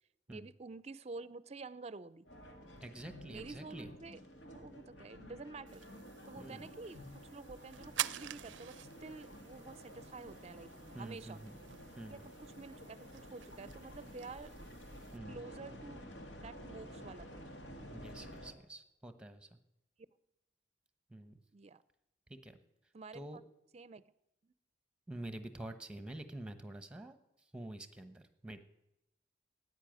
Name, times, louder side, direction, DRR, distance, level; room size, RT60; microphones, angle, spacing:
voice 1, 0.3-2.2 3.3-4.2 4.5-5.9 6.3-11.4 12.1-14.5 15.3-16.1 16.4-17.5 21.5-21.8 22.9-23.4 23.7-24.0 24.4-24.5, right 3 dB, 35° right, 17 dB, 0.5 m, -49 dB
sound 1, 2.3-18.5, equal, 80° left, 2.2 m, -52 dB
voice 2, 2.8-3.9 6.4-6.7 10.9-11.5 12.0-12.2 15.1-15.4 17.9-19.6 21.1-21.4 22.3-22.6 23.1-23.4 25.1-27.2 27.5-28.6, right 1 dB, 5° right, 9 dB, 1.1 m, -47 dB
sound 2, 5.7-15.2, right 13 dB, 85° right, 0.4 m, -47 dB
14.0 x 9.7 x 9.2 m, 0.88 s
head